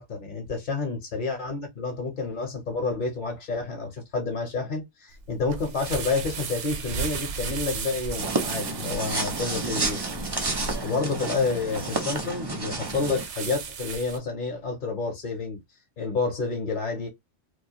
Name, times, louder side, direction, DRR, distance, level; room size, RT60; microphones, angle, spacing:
voice 1, 0.0-10.0 10.8-15.6 16.0-17.1, left 4 dB, 45° left, 0.8 m, -29 dB
sound 1, 5.1-14.2, right 5 dB, 75° right, 0.9 m, -35 dB
sound 2, 8.2-13.3, right 3 dB, 30° right, 0.4 m, -30 dB
2.3 x 2.2 x 2.7 m
omnidirectional pair, 1.2 m